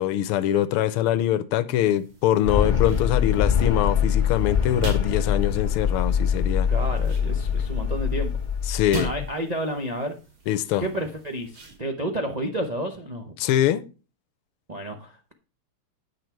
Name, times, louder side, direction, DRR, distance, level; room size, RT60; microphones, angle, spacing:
voice 1, 0.0-6.7 8.7-9.1 10.5-10.9 13.4-13.9, left 12 dB, 85° left, 1.6 m, -23 dB
sound 1, 1.7-11.8, right 4 dB, 70° right, 3.1 m, -42 dB
sound 2, 2.4-9.3, left 7 dB, 65° left, 0.4 m, -24 dB
voice 2, 6.7-8.3 8.9-10.1 10.8-13.3 14.7-15.3, right 1 dB, 45° right, 0.5 m, -30 dB
9.0 x 6.5 x 4.5 m
omnidirectional pair, 2.4 m